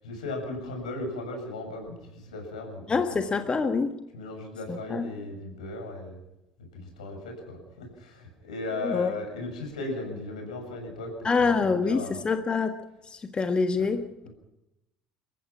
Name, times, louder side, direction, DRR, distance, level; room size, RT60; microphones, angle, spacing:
voice 1, 0.0-3.4 4.1-6.2 6.7-12.2 13.8-13.9 14.2-14.3, left 2 dB, 75° left, 2 dB, 7.4 m, -37 dB
voice 2, 2.9-3.9 4.7-5.1 8.8-9.1 11.2-14.3, left 4 dB, 25° left, 7 dB, 1.6 m, -26 dB
30.0 x 15.5 x 6.0 m, 0.91 s
figure-of-eight pair, 60°, 4 cm